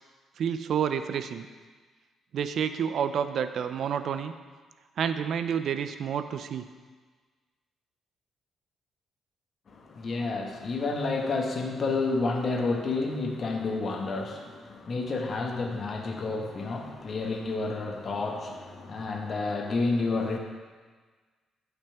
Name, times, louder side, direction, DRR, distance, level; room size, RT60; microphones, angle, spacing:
voice 1, 0.4-1.5 2.3-4.3 5.0-6.6, right 8 dB, 65° right, 10 dB, 0.5 m, -29 dB
voice 2, 9.7-20.4, left 3 dB, 45° left, 2 dB, 1.5 m, -30 dB
14.5 x 5.8 x 3.5 m, 1.4 s
cardioid pair, 90°, 0 cm